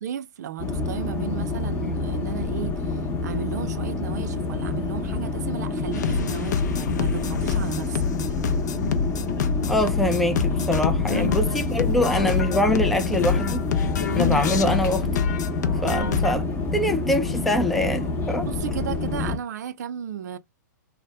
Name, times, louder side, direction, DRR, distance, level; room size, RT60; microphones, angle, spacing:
voice 1, 0.0-8.1 11.1-11.3 15.9-16.4 18.4-20.4, right 9 dB, 65° right, 0.4 m, -34 dB
sound 1, 0.6-19.4, left 3 dB, 20° left, 0.8 m, -28 dB
sound 2, 5.9-16.4, left 6 dB, 70° left, 0.5 m, -26 dB
voice 2, 9.7-13.7 14.1-15.3 15.8-16.4 16.7-18.5, left 1 dB, ahead, 0.3 m, -24 dB
2.7 x 2.1 x 3.2 m
hypercardioid pair, 130°, 10 cm